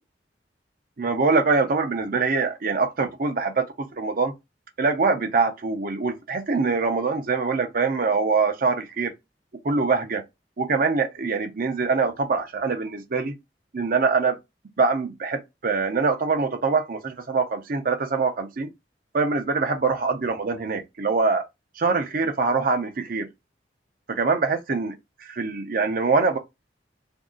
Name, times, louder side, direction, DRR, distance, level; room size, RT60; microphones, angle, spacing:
voice 1, 1.0-4.3 4.8-9.1 9.6-10.2 10.6-13.3 13.7-14.4 14.8-18.7 19.1-21.4 21.8-23.3 24.1-24.9 25.2-26.4, right 4 dB, 55° right, 0.6 m, -24 dB
2.7 x 2.3 x 3.7 m
head